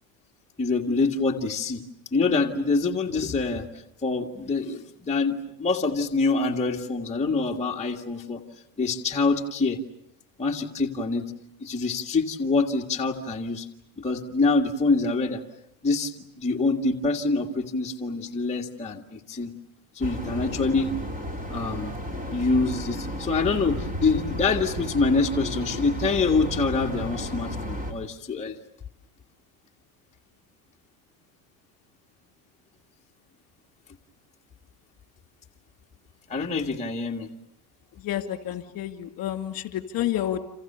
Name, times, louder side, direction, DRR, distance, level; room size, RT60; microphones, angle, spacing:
voice 1, 0.6-1.8 2.1-3.7 4.0-8.4 8.8-9.8 10.4-11.3 11.6-13.7 14.0-15.4 15.8-19.5 19.9-20.9 21.5-21.9 22.3-28.6 36.3-37.3, left 3 dB, 15° left, -1 dB, 1.9 m, -25 dB
sound 1, 20.0-27.9, equal, 15° right, 4.0 m, -33 dB
voice 2, 37.9-40.4, left 12 dB, 45° left, 8 dB, 2.6 m, -30 dB
30.0 x 27.5 x 6.8 m, 0.74 s
supercardioid pair, 120°, 50 cm